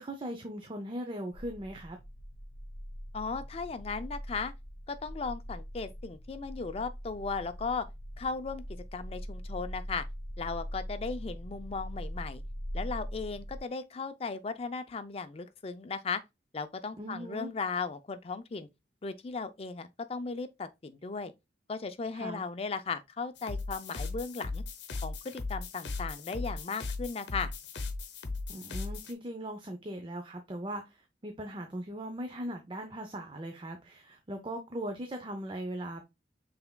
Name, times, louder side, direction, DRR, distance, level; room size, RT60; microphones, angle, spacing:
voice 1, 0.0-2.0 17.0-17.5 22.1-22.4 28.5-36.2, right 1 dB, 25° right, 0.5 m, -39 dB
sound 1, 1.3-13.6, equal, 55° left, 0.9 m, -42 dB
voice 2, 3.1-4.5 4.9-7.9 8.2-10.1 10.4-12.4 12.7-16.2 16.5-18.7 19.0-21.3 21.7-24.6 25.0-27.5, left 4 dB, 35° left, 0.4 m, -36 dB
sound 2, 23.4-29.1, left 3 dB, 80° left, 0.7 m, -38 dB
5.7 x 3.4 x 2.2 m
head